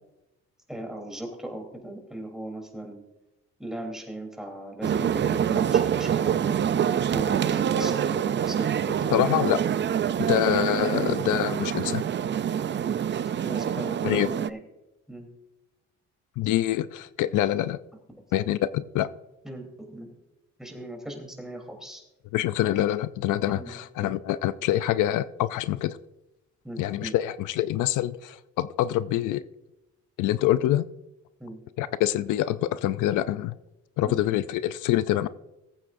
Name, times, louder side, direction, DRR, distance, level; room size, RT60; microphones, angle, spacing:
voice 1, 0.7-3.0 3.6-6.6 7.1-9.4 13.4-14.6 15.1-15.3 19.4-20.1 20.6-22.0 23.5-24.1 26.6-27.1 31.4-31.6 34.0-34.2, right 1 dB, ahead, 2 dB, 3.4 m, -38 dB
sound 1, 4.8-14.5, right 9 dB, 40° right, 0.5 m, -26 dB
voice 2, 9.1-9.6 10.2-12.0 14.0-14.3 16.4-17.8 18.3-19.1 22.3-26.0 26.8-29.4 30.2-30.8 31.8-33.6 34.0-35.3, left 13 dB, 80° left, 15 dB, 0.5 m, -25 dB
19.5 x 8.5 x 2.6 m, 0.97 s
cardioid pair, 90°, 30 cm